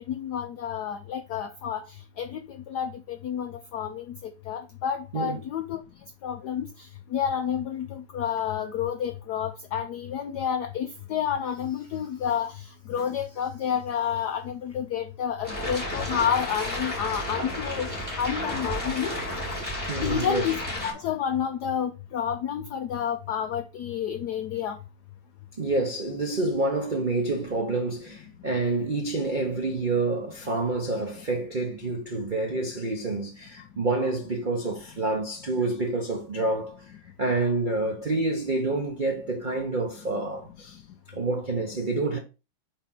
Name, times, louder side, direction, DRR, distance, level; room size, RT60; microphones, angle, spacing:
voice 1, 0.1-1.8 2.2-2.4 2.7-5.8 6.2-6.7 7.1-17.9 18.2-19.1 20.0-24.8, left 8 dB, 85° left, 0.9 m, -30 dB
sound 1, 15.4-20.9, left 1 dB, 5° left, 3.0 m, -32 dB
voice 2, 19.9-20.4 25.6-36.9 37.2-40.8 41.1-42.2, right 2 dB, 75° right, 0.4 m, -28 dB
4.4 x 4.3 x 5.7 m
omnidirectional pair, 2.4 m